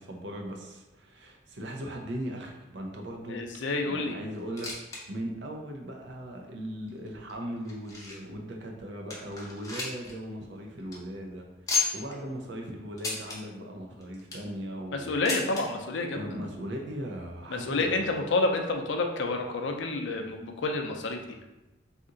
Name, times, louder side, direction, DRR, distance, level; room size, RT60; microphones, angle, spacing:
voice 1, 0.0-3.4 3.8-15.2 16.1-18.1, equal, 70° right, 1 dB, 0.5 m, -38 dB
voice 2, 3.3-4.2 14.9-16.3 17.5-21.4, left 3 dB, 75° left, 4 dB, 0.4 m, -29 dB
sound 1, 4.4-5.0 5.3-5.4 6.1-6.2 6.9-8.4 8.8-8.9 9.1-10.1 10.4-10.5 10.8-11.0 11.7-12.2 13.0-13.4 14.0-14.5 15.3-15.6 16.6-16.7 16.9-17.0 17.8-17.9, left 4 dB, 20° left, 0.5 m, -33 dB
2.8 x 2.5 x 3.8 m, 1.0 s
head